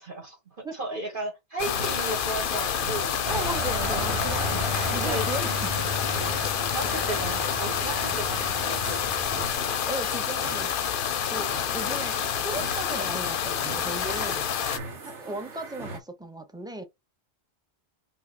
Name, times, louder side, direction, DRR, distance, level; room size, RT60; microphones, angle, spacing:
voice 1, 0.0-3.2 4.2-4.4 5.0-5.3 6.2-9.1, right 2 dB, 50° right, 1.3 m, -35 dB
sound 1, 1.6-14.8, left 9 dB, 60° left, 0.7 m, -28 dB
sound 2, 1.8-16.0, right 3 dB, 90° right, 1.6 m, -41 dB
sound 3, 3.2-9.6, left 1 dB, 30° right, 0.9 m, -33 dB
voice 2, 3.3-4.6 4.9-5.7 9.9-10.8 11.3-14.5 15.0-16.8, right 1 dB, 5° right, 0.5 m, -36 dB
4.4 x 2.7 x 4.3 m
omnidirectional pair, 1.2 m